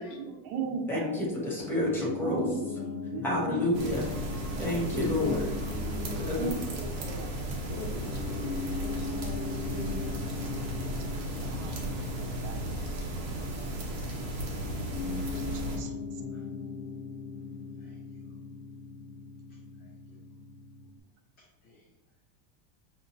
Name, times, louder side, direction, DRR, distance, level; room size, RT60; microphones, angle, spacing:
voice 1, 0.0-1.2 2.2-2.5 2.9-4.1 4.5-4.7 6.3-7.3 9.2-9.3 9.7-9.9 11.5-11.7 12.4-12.6 15.0-15.3 15.5-15.9, right 4 dB, 55° right, 4 dB, 0.8 m, -38 dB
voice 2, 0.9-2.5 3.2-4.1 4.6-5.4 6.2-6.3, left 1 dB, 5° left, -4 dB, 0.8 m, -29 dB
Piano, 1.6-21.0, left 5 dB, 80° left, 0.6 m, -40 dB
voice 3, 3.3-4.4 5.2-6.3 7.7-9.3 13.0-13.1, left 3 dB, 55° left, 1 dB, 1.0 m, -43 dB
sound 1, 3.7-15.8, right 1 dB, 35° right, 1.0 m, -35 dB
voice 4, 19.8-20.2 21.4-21.9, left 1 dB, 20° left, -3 dB, 0.4 m, -55 dB
5.6 x 2.9 x 2.6 m, 1.0 s
supercardioid pair, 155°, 47 cm